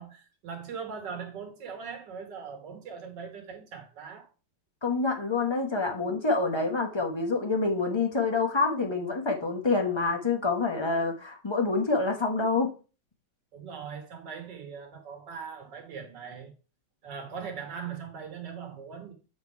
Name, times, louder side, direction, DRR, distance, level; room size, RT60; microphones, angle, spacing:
voice 1, 0.0-4.3 13.5-16.5 17.0-19.1, right 6 dB, 60° right, 1.9 m, -40 dB
voice 2, 4.8-12.7, left 3 dB, 35° left, 0.4 m, -27 dB
7.8 x 3.8 x 4.5 m
omnidirectional pair, 2.2 m